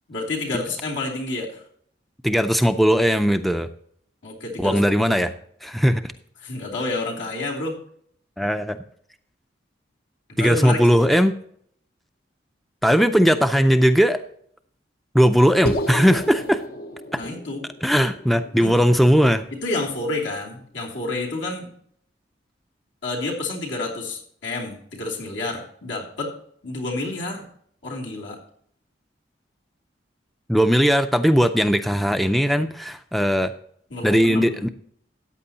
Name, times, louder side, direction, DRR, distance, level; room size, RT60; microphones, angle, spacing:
voice 1, 0.1-1.6 4.2-5.3 6.4-7.8 10.4-11.0 17.1-17.6 18.6-18.7 19.6-21.7 23.0-26.3 26.6-27.5 27.8-28.4 33.9-34.6, left 2 dB, 80° left, -2 dB, 2.9 m, -29 dB
voice 2, 2.2-3.7 4.6-5.3 5.6-6.1 8.4-8.8 10.4-11.3 12.8-14.2 15.1-16.6 17.1-17.2 17.8-19.5 30.5-33.5 34.0-34.7, equal, ahead, 9 dB, 0.4 m, -18 dB
sound 1, 15.7-20.0, equal, 55° left, 0.7 m, -32 dB
14.0 x 8.9 x 2.8 m, 0.64 s
head